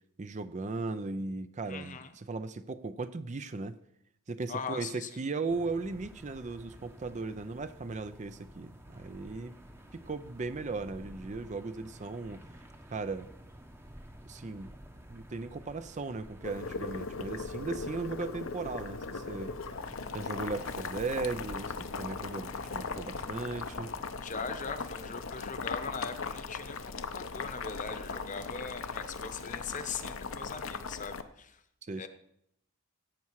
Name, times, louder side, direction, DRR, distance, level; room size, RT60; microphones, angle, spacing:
voice 1, 0.2-3.8 4.3-9.5 9.9-12.4 12.9-13.3 14.3-14.7 15.1-19.5 20.1-23.9 31.8-32.1, right 3 dB, 35° right, 12 dB, 0.5 m, -37 dB
voice 2, 1.7-2.1 4.5-5.1 24.2-31.6 32.0-32.1, left 5 dB, 35° left, 9 dB, 0.9 m, -40 dB
sound 1, 5.5-24.0, equal, 10° right, 0.9 m, -51 dB
Boiling, 16.4-31.2, left 4 dB, 65° left, 0.7 m, -39 dB
16.5 x 8.4 x 4.7 m, 0.73 s
head